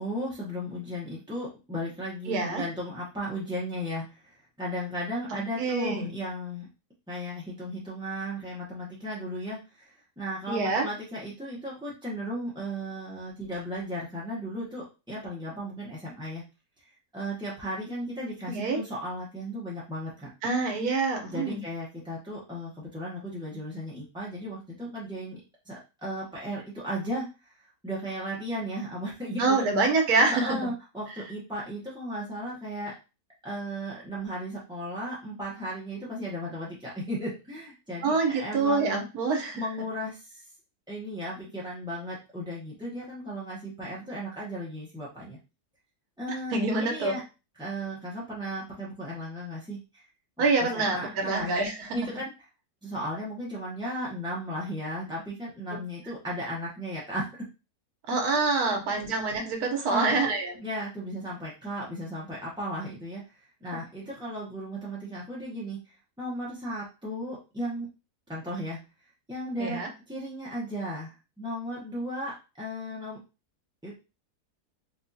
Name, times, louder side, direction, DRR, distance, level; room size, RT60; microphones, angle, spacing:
voice 1, 0.0-6.7 7.1-9.8 10.2-16.4 17.1-20.3 21.3-27.5 27.8-29.7 30.3-32.9 33.4-39.0 39.5-40.4 40.9-45.4 46.2-47.2 47.6-50.0 50.6-51.5 51.9-52.3 52.8-57.3 58.6-58.7 59.9-60.2 60.6-67.9 68.3-68.8 69.3-69.8 70.1-73.2 73.8-74.0, equal, 5° right, -6 dB, 0.4 m, -35 dB
voice 2, 2.3-2.6 5.3-6.1 10.5-10.8 18.5-18.8 20.4-21.6 29.4-30.6 38.0-39.6 46.5-47.2 50.4-52.0 58.1-60.5 69.6-69.9, right 3 dB, 75° right, 3 dB, 1.4 m, -26 dB
4.2 x 2.4 x 2.7 m, 0.30 s
omnidirectional pair, 1.6 m